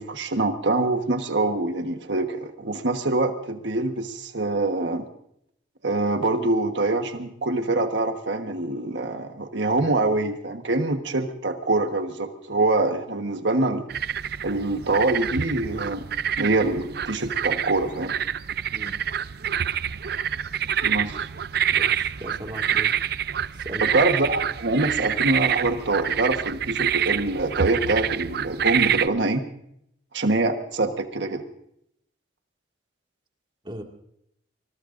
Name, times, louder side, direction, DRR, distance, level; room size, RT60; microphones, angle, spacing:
voice 1, 0.0-5.1 5.8-13.8 14.4-16.0 16.4-18.1 20.8-21.3 23.8-29.4 30.1-31.4, right 2 dB, 75° right, 6 dB, 1.4 m, -24 dB
sound 1, 13.9-29.1, right 9 dB, 60° right, 0.5 m, -27 dB
voice 2, 21.7-22.9 23.5-23.9 33.6-33.8, equal, 25° right, 2 dB, 2.1 m, -38 dB
24.5 x 21.0 x 2.6 m, 0.74 s
head